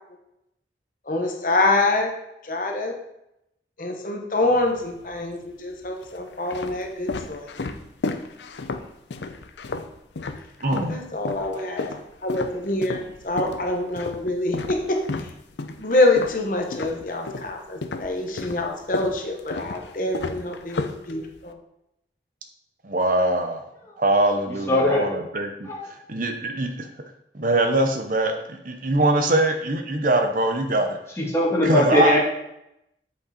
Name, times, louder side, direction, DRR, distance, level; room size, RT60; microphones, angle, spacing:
voice 1, 1.0-2.1 2.4-3.0 3.8-7.5 10.9-11.9 12.2-15.3 15.8-21.6, left 2 dB, 50° left, 2 dB, 1.0 m, -25 dB
sound 1, 4.4-5.2 5.9-11.0 11.2-17.5 17.8-21.5, left 3 dB, 85° left, 0.6 m, -32 dB
voice 2, 10.6-11.0 22.8-23.6 24.0-25.7 26.1-26.9 27.3-31.0 31.6-32.2, right 1 dB, 50° right, 5 dB, 0.8 m, -22 dB
voice 3, 24.7-25.1 25.6-25.8 31.2-32.2, left 1 dB, 15° left, -3 dB, 1.7 m, -20 dB
8.0 x 5.3 x 4.3 m, 0.83 s
head